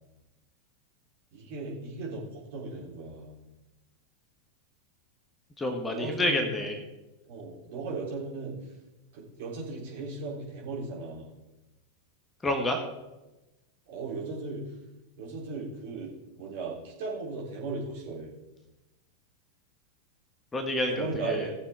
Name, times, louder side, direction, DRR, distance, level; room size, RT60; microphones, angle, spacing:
voice 1, 1.3-3.4 5.9-6.5 7.2-8.7 9.1-11.3 13.9-14.8 15.2-18.4 20.8-21.6, right 3 dB, 50° right, -4 dB, 3.8 m, -37 dB
voice 2, 5.6-6.8 12.4-12.8 20.5-21.5, left 1 dB, 15° left, 5 dB, 1.5 m, -28 dB
18.0 x 7.1 x 3.5 m, 1.0 s
figure-of-eight pair, 90°, 0 cm